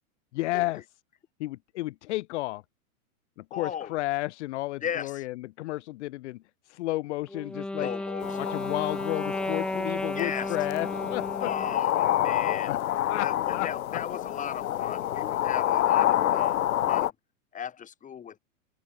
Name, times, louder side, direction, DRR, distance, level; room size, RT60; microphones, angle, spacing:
voice 1, 0.3-0.8 1.4-2.6 3.5-6.4 6.7-7.9 8.4-11.5 12.7-12.8 13.1-13.7, left 18 dB, 55° left, 1.2 m, -32 dB
voice 2, 3.5-4.0 4.8-5.2 7.8-8.4 10.1-10.6 11.4-12.7 13.2-17.1 17.5-18.4, left 8 dB, 20° left, 6.8 m, -36 dB
Wind instrument woodwind instrument, 7.3-11.8, left 2 dB, ahead, 0.9 m, -33 dB
sound 1, 8.2-17.1, left 12 dB, 80° left, 2.6 m, -28 dB
open air
supercardioid pair, 150°, 42 cm